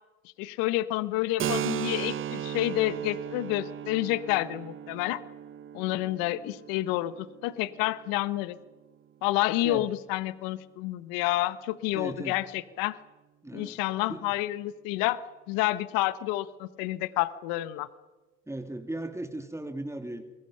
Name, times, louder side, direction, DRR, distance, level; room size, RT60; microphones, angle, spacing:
voice 1, 0.4-5.2 5.7-8.6 9.2-13.0 13.5-17.9, left 16 dB, 70° left, 15 dB, 1.3 m, -29 dB
Keyboard (musical), 1.4-8.8, right 10 dB, 35° right, 0.8 m, -36 dB
voice 2, 11.9-12.4 13.4-13.8 14.1-14.2 18.5-20.2, right 1 dB, 10° right, 6 dB, 2.9 m, -36 dB
29.5 x 22.0 x 5.8 m, 1.1 s
hypercardioid pair, 70°, 35 cm